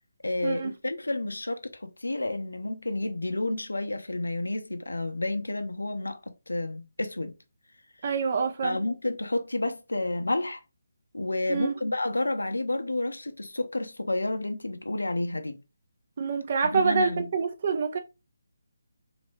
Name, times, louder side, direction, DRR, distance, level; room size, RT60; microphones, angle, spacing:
voice 1, 0.2-6.2 6.5-7.4 8.6-10.6 11.1-15.6 16.7-17.3, left 2 dB, 70° left, 0.8 m, -30 dB
voice 2, 8.0-8.8 11.5-11.8 16.2-18.0, right 5 dB, 35° right, 0.6 m, -26 dB
4.0 x 3.0 x 3.3 m
figure-of-eight pair, 150°, 0 cm